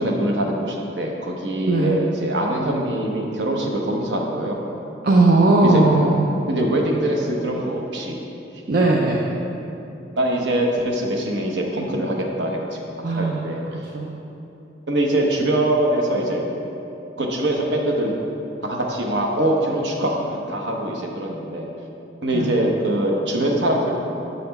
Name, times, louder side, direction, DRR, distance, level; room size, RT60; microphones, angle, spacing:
voice 1, 0.0-4.6 5.6-5.8 6.5-8.2 10.1-12.8 13.1-13.8 14.9-16.4 17.2-18.1 18.6-21.7 22.2-24.0, right 1 dB, 70° right, 0 dB, 0.9 m, -23 dB
voice 2, 1.7-2.0 5.0-6.2 8.7-9.2 13.0-14.1 22.3-22.5, right 2 dB, 50° right, -2 dB, 0.5 m, -18 dB
6.8 x 4.1 x 5.3 m, 2.9 s
head